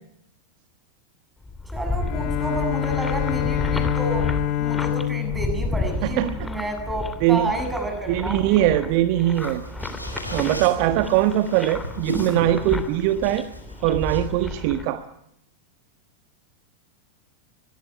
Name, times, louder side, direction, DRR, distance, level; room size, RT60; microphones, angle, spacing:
sound 1, 1.4-14.8, left 2 dB, 10° left, 3.0 m, -32 dB
voice 1, 1.7-8.6, right 1 dB, 10° right, 6 dB, 7.6 m, -30 dB
Bowed string instrument, 2.0-6.9, left 12 dB, 40° left, 2.1 m, -27 dB
voice 2, 6.0-6.5 7.2-7.5 8.1-9.6 10.3-13.4 13.8-15.0, right 13 dB, 45° right, 10 dB, 1.3 m, -21 dB
sound 2, 9.3-14.3, left 1 dB, 90° left, 5.0 m, -36 dB
23.0 x 20.0 x 9.8 m, 0.78 s
figure-of-eight pair, 90°, 0 cm